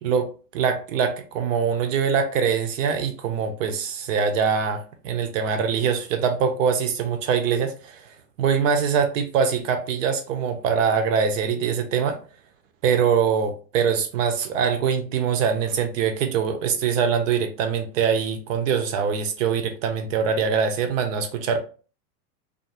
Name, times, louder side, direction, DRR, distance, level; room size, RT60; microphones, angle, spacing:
voice 1, 0.0-8.1 8.4-12.2 12.8-21.6, right 6 dB, 55° right, 0.5 m, -23 dB
2.5 x 2.4 x 2.7 m
hypercardioid pair, 105°, 49 cm